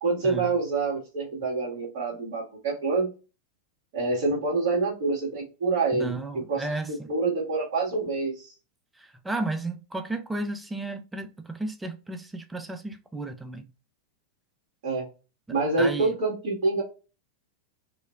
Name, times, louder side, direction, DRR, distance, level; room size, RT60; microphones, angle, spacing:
voice 1, 0.0-3.1 3.9-6.1 6.5-6.8 7.1-8.5 14.8-15.1 15.5-16.8, right 3 dB, 50° right, 1.7 m, -26 dB
voice 2, 5.9-7.1 9.0-13.7 15.8-16.2, right 2 dB, 10° right, 0.5 m, -33 dB
4.8 x 2.0 x 2.4 m
figure-of-eight pair, 90°, 0 cm